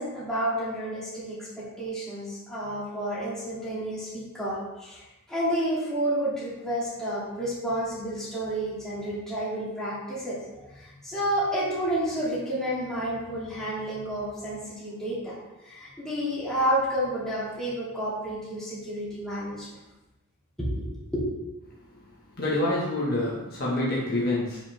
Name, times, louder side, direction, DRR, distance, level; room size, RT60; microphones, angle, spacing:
voice 1, 0.0-5.0 5.3-15.3 15.6-19.7 20.6-20.9 21.1-21.2, right 1 dB, 5° left, -10 dB, 2.8 m, -30 dB
voice 2, 22.4-24.6, left 1 dB, 45° left, -6 dB, 1.6 m, -27 dB
8.2 x 5.5 x 3.6 m, 1.1 s
head